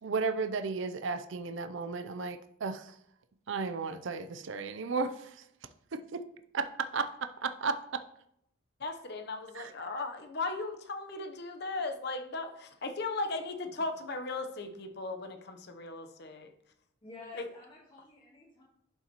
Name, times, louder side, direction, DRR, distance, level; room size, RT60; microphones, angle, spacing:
voice 1, 0.0-3.0 3.5-5.4 5.9-6.3 6.5-8.0 9.5-9.7, right 4 dB, 65° right, 10 dB, 0.5 m, -34 dB
voice 2, 8.8-16.5 17.3-17.5, left 3 dB, 50° left, 6 dB, 0.8 m, -37 dB
voice 3, 17.0-18.6, left 3 dB, 25° left, -5 dB, 2.5 m, -50 dB
11.0 x 5.6 x 3.0 m, 0.75 s
head